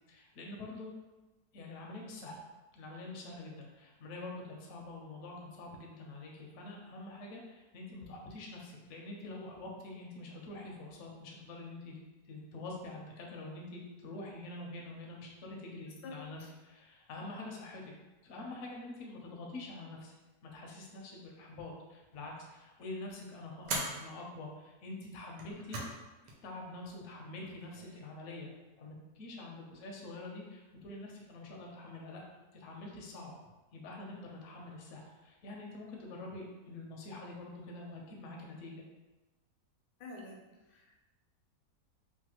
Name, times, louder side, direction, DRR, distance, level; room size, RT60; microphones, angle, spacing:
voice 1, 0.1-0.9 1.5-2.4 2.7-11.9 12.2-17.9 18.2-20.1 20.4-25.8 26.4-28.5 28.8-32.2 32.5-33.3 33.7-38.8, left 2 dB, 65° left, -1 dB, 0.8 m, -46 dB
sound 1, 22.1-22.5 23.6-24.0 25.3-26.0 26.3-26.4 27.5-28.0, right 2 dB, 85° right, 1.3 m, -39 dB
voice 2, 40.0-41.0, left 3 dB, 90° left, -1 dB, 1.2 m, -48 dB
3.1 x 2.2 x 2.8 m, 1.1 s
omnidirectional pair, 1.8 m